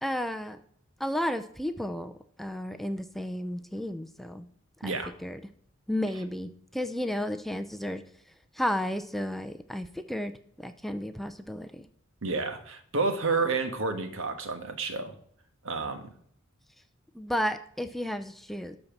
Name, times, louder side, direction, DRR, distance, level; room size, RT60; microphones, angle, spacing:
voice 1, 0.0-0.6 1.0-2.1 2.4-4.5 4.8-4.9 5.2-5.4 5.9-8.0 8.5-10.3 10.6-11.9 17.1-18.8, equal, ahead, 8 dB, 0.5 m, -32 dB
voice 2, 12.2-15.1 15.6-16.1, right 4 dB, 70° right, 7 dB, 1.3 m, -30 dB
12.0 x 4.3 x 7.1 m, 0.64 s
head